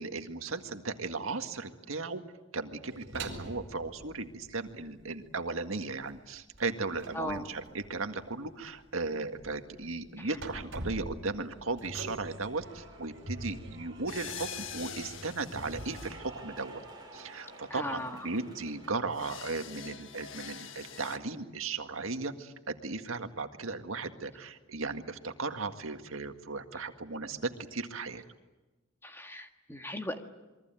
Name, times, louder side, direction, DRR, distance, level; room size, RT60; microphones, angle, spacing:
voice 1, 0.0-2.2 2.5-16.8 17.1-28.2, right 3 dB, 80° right, 7 dB, 1.9 m, -36 dB
sound 1, 2.9-5.1 5.3-15.9, right 1 dB, 60° right, 4.8 m, -45 dB
voice 2, 7.1-7.5 10.2-10.3 17.7-18.3 29.0-30.2, left 1 dB, 10° left, 5 dB, 1.7 m, -38 dB
Cheering / Applause, 11.3-19.0, right 1 dB, 20° right, 7.0 m, -51 dB
sound 2, 14.1-21.2, left 7 dB, 70° left, 1.6 m, -46 dB
28.0 x 23.0 x 9.0 m, 1.1 s
head